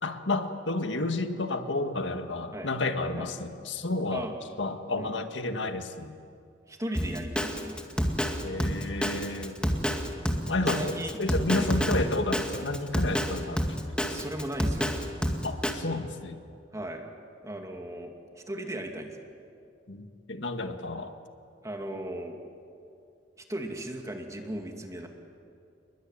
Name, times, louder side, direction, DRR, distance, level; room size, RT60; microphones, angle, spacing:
voice 1, 0.0-4.3 4.6-6.2 8.4-9.6 10.5-14.2 15.4-16.4 19.9-21.1, left 2 dB, 85° left, 7 dB, 1.8 m, -31 dB
voice 2, 6.7-7.8 10.3-11.2 11.5-11.7 14.1-14.9 16.7-17.0 17.4-19.2 21.6-22.4 23.4-25.1, right 1 dB, 20° right, 3 dB, 2.5 m, -37 dB
Drum kit, 6.9-15.7, equal, 5° left, 2.1 m, -28 dB
29.5 x 22.0 x 9.2 m, 2.4 s
head